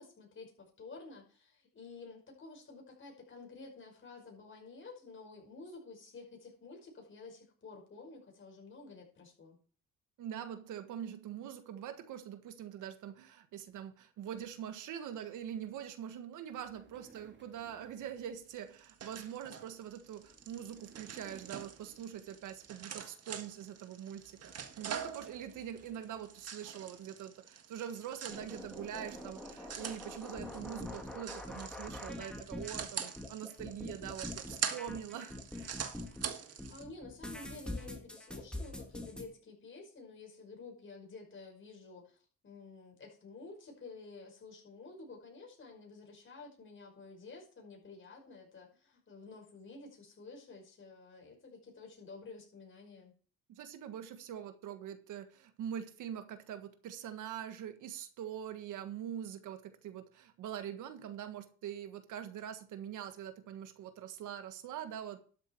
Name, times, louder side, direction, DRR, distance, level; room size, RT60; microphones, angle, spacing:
voice 1, 0.0-9.6 36.7-53.1, left 3 dB, 40° left, 5.5 m, -51 dB
voice 2, 10.2-35.8 53.5-65.2, right 9 dB, 85° right, 1.6 m, -44 dB
sound 1, 16.5-23.0 23.4-23.7 24.1-27.1 27.9-30.4, right 4 dB, 35° right, 2.6 m, -61 dB
sound 2, 18.5-36.8, right 7 dB, 55° right, 1.7 m, -44 dB
sound 3, 28.3-36.3 36.6-39.2, left 1 dB, 5° left, 2.7 m, -44 dB
12.5 x 7.7 x 4.6 m
cardioid pair, 90°, 30 cm